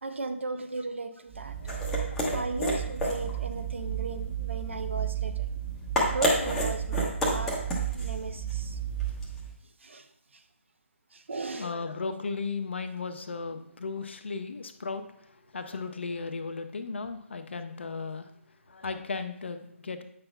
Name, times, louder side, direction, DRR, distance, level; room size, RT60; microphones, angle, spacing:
voice 1, 0.0-1.5 2.3-5.4 6.1-7.5 7.9-8.8 9.8-10.1 11.1-11.7, right 3 dB, 60° right, 8 dB, 0.6 m, -36 dB
sound 1, 1.3-9.5, right 3 dB, 5° left, 0.9 m, -30 dB
voice 2, 1.6-2.3 11.5-18.3 18.7-20.0, left 4 dB, 55° left, 8 dB, 0.6 m, -36 dB
8.5 x 6.0 x 2.3 m, 0.71 s
figure-of-eight pair, 145°, 7 cm